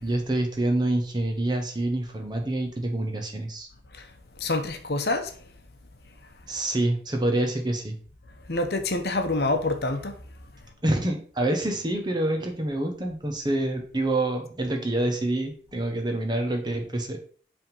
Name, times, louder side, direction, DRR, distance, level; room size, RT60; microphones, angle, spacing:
voice 1, 0.0-3.7 6.5-8.0 10.8-17.2, right 1 dB, 25° right, 1.1 m, -27 dB
voice 2, 4.4-5.3 8.5-10.1, left 2 dB, 65° left, 0.9 m, -26 dB
5.4 x 3.6 x 5.3 m
head